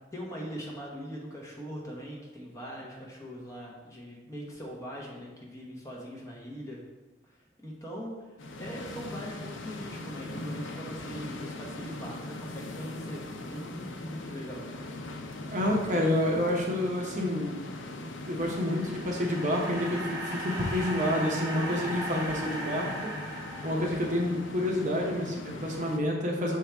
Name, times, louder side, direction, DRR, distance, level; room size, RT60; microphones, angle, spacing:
voice 1, 0.1-6.8 7.2-8.3 8.6-13.2 13.5-14.6, equal, 15° left, -3 dB, 0.9 m, -41 dB
sound 1, 8.4-26.0, left 2 dB, 85° left, 0.6 m, -40 dB
voice 2, 15.5-17.6 18.3-23.1 23.6-26.6, left 1 dB, 40° right, -1 dB, 0.8 m, -29 dB
sound 2, 18.2-24.5, right 1 dB, 20° right, 1.2 m, -38 dB
6.1 x 4.6 x 3.4 m, 1.2 s
head